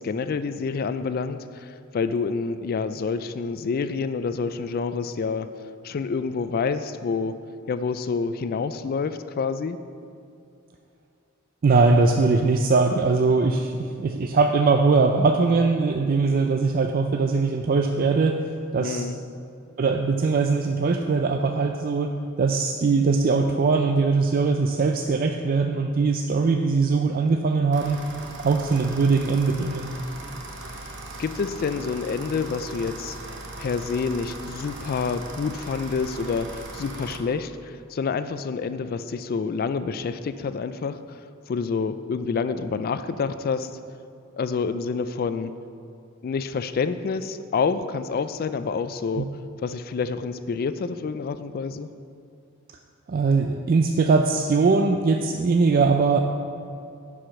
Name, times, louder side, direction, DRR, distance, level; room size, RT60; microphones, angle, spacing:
voice 1, 0.0-5.5 5.8-7.4 7.7-9.8 18.8-19.2 31.2-33.2 33.6-41.2 41.5-43.7 44.4-45.5 46.2-49.3 49.6-51.9, left 5 dB, 45° left, 11 dB, 0.3 m, -28 dB
voice 2, 11.6-18.4 18.7-19.1 19.8-22.1 22.4-28.0 28.4-29.9 49.2-49.3 53.1-56.2, right 4 dB, 45° right, 4 dB, 0.4 m, -21 dB
sound 1, 27.7-37.2, right 2 dB, 60° right, 1.0 m, -39 dB
10.0 x 4.9 x 5.8 m, 2.5 s
head